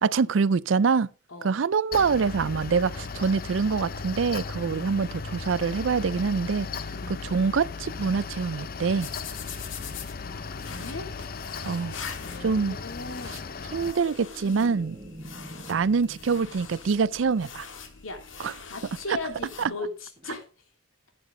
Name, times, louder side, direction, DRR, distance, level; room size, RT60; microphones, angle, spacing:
voice 1, 0.0-1.1 1.4-6.7 7.3-9.1 11.6-11.9 12.4-12.8 13.7-15.0 15.7-17.7 18.4-18.5, right 5 dB, 65° right, 0.4 m, -25 dB
Mechanical fan, 1.9-13.9, left 5 dB, 45° left, 0.6 m, -37 dB
voice 2, 6.9-7.3 10.2-11.1 12.2-13.5 18.0-18.2 18.6-20.5, left 2 dB, 90° left, 2.9 m, -38 dB
sound 1, 9.0-19.7, left 6 dB, 70° left, 1.8 m, -43 dB
sound 2, 13.3-17.8 20.2-20.3, right 1 dB, 25° right, 1.2 m, -46 dB
13.0 x 8.6 x 3.8 m
head